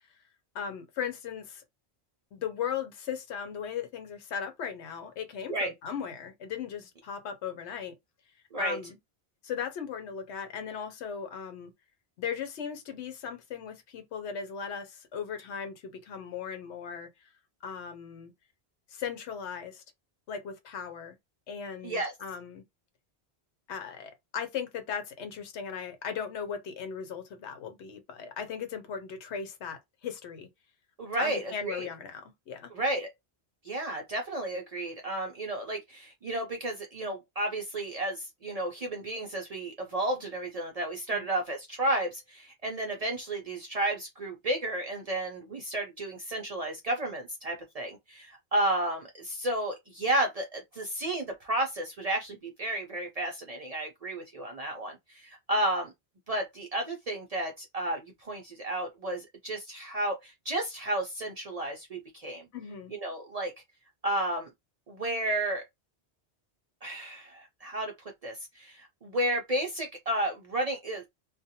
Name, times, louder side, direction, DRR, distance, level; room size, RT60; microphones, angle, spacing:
voice 1, 0.5-1.6 2.3-7.9 8.6-9.0 9.4-11.7 12.2-17.1 17.6-18.3 18.9-19.8 20.3-21.1 21.5-22.6 23.7-30.5 31.1-32.7 41.1-41.3 62.5-62.9, left 7 dB, 80° left, 1.0 m, -37 dB
voice 2, 31.0-31.9 32.7-33.1 33.6-55.9 56.3-62.4 62.9-63.5 64.0-64.5 64.9-65.6 66.8-67.9 68.2-71.1, right 1 dB, 50° right, 0.4 m, -32 dB
2.4 x 2.1 x 2.7 m
omnidirectional pair, 1.1 m